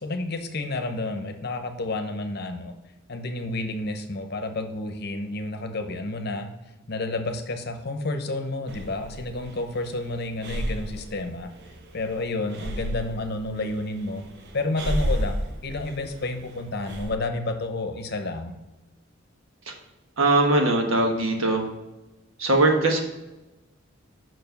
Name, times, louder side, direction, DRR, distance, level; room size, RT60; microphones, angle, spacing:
voice 1, 0.0-2.7 3.1-6.5 6.9-11.5 11.9-14.2 14.5-18.5, left 2 dB, 50° left, 6 dB, 0.8 m, -30 dB
Breathing, 8.7-17.2, equal, 55° right, 0.7 m, -33 dB
voice 2, 20.2-21.7 22.4-23.0, right 2 dB, 80° right, 3 dB, 1.3 m, -21 dB
6.2 x 4.8 x 5.2 m, 1.0 s
head